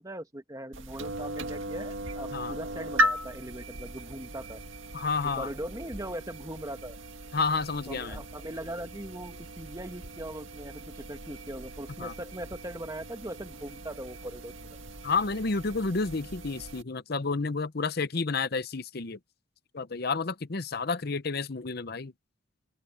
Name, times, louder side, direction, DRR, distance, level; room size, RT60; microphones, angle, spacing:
voice 1, 0.0-4.6 5.3-7.0 7.9-14.5, right 1 dB, 15° right, 1.6 m, -40 dB
sound 1, 0.7-16.8, right 1 dB, 75° right, 1.9 m, -37 dB
voice 2, 4.9-5.5 7.3-8.2 12.0-12.1 15.0-19.2 19.7-22.1, left 4 dB, 50° left, 0.8 m, -30 dB
open air
head